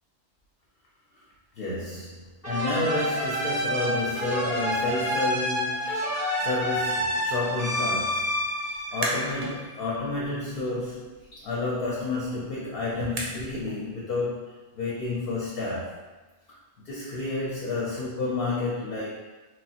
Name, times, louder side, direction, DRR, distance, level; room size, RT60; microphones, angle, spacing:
voice 1, 1.6-6.1 6.4-8.5 8.9-16.0 16.5-16.6 16.8-19.2, left 2 dB, 60° left, -5 dB, 0.7 m, -30 dB
sound 1, 2.4-9.9, equal, 15° left, 0.8 m, -28 dB
sound 2, 8.7-9.5 9.9-13.7, right 2 dB, 60° right, 0.6 m, -37 dB
2.9 x 2.0 x 2.7 m, 1.2 s
omnidirectional pair, 1.2 m